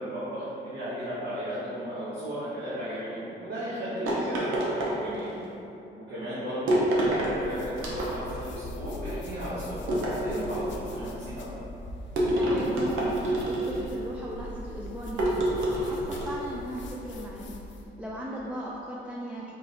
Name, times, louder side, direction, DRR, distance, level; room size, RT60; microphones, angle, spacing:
voice 1, 0.0-5.3 6.0-11.6, equal, 60° right, -11 dB, 1.2 m, -35 dB
sound 1, 4.1-5.4 6.7-7.3 7.8-8.5 9.9-10.8 12.2-13.9 15.2-16.5, right 1 dB, 85° right, 0.8 m, -27 dB
sound 2, 7.0-17.9, left 1 dB, 70° left, 0.5 m, -41 dB
voice 2, 10.7-11.0 12.4-17.6 18.0-19.6, equal, 5° right, -4 dB, 0.4 m, -38 dB
3.8 x 2.6 x 4.2 m, 2.8 s
cardioid pair, 90°, 20 cm